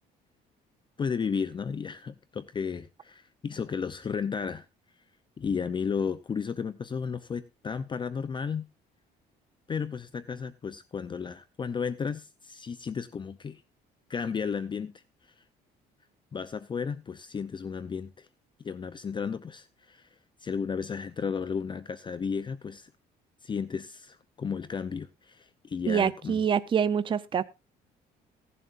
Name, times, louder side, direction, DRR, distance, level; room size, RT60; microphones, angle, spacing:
voice 1, 1.0-4.7 5.4-8.7 9.7-13.6 14.1-15.4 16.3-18.3 18.6-22.9 23.4-26.4, left 6 dB, 30° left, 0.5 m, -33 dB
voice 2, 25.9-27.4, right 7 dB, 30° right, 0.6 m, -25 dB
16.5 x 11.0 x 2.5 m
cardioid pair, 110°, 17 cm